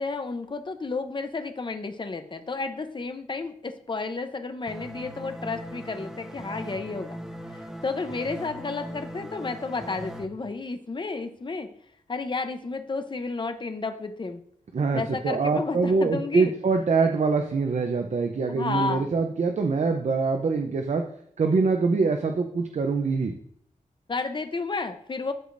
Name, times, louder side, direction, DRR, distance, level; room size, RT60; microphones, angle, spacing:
voice 1, 0.0-7.2 7.5-11.7 12.1-14.4 14.9-16.5 18.5-19.1 24.1-25.3, left 3 dB, 35° left, 8 dB, 0.8 m, -32 dB
sound 1, 4.7-10.2, equal, 5° right, 0.9 m, -39 dB
voice 2, 14.7-21.1 21.4-23.3, right 4 dB, 55° right, 5 dB, 0.7 m, -24 dB
13.5 x 5.0 x 2.6 m, 0.68 s
wide cardioid pair, 115°, 14 cm